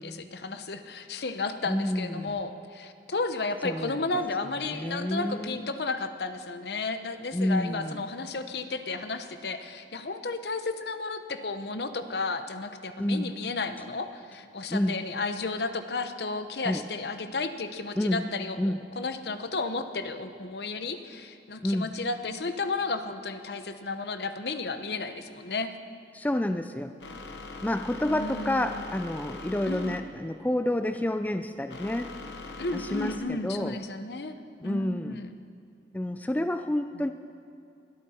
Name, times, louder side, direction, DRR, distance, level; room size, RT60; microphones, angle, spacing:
voice 1, 0.0-25.7 28.1-28.9 29.7-29.9 32.6-34.4 34.6-35.3, left 3 dB, 65° left, 9 dB, 0.9 m, -33 dB
voice 2, 1.7-2.4 3.6-4.0 4.7-5.7 7.3-8.0 13.0-13.3 14.7-15.0 16.6-16.8 18.0-18.2 18.6-18.8 21.6-21.9 26.1-26.9 27.6-32.1 32.7-33.8 34.6-35.2 35.9-37.1, left 1 dB, 10° left, 9 dB, 0.4 m, -29 dB
sound 1, 27.0-33.2, left 3 dB, 80° left, 1.1 m, -42 dB
21.5 x 13.0 x 4.3 m, 2.6 s
head